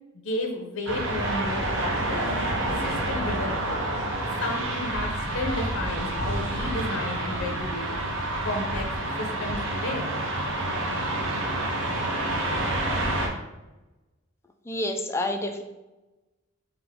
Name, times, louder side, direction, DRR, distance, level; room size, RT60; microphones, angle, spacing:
voice 1, 0.1-2.3 2.8-3.9 4.4-7.9 8.4-8.8 9.2-10.1, left 1 dB, 75° left, 2 dB, 0.7 m, -32 dB
sound 1, 0.9-13.3, right 1 dB, 65° right, 0.8 m, -28 dB
voice 2, 14.7-15.6, left 1 dB, 15° left, 4 dB, 0.4 m, -28 dB
3.5 x 3.3 x 3.6 m, 1.0 s
head